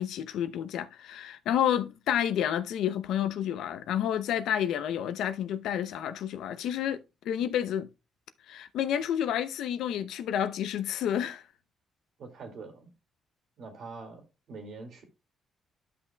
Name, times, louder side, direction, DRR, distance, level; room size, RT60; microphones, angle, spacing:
voice 1, 0.0-7.9 8.5-11.4, left 10 dB, 80° left, 0.6 m, -30 dB
voice 2, 12.2-12.9 13.6-14.2 14.5-15.0, right 4 dB, 65° right, 2.2 m, -44 dB
12.0 x 5.8 x 2.3 m
cardioid pair, 90°, 0 cm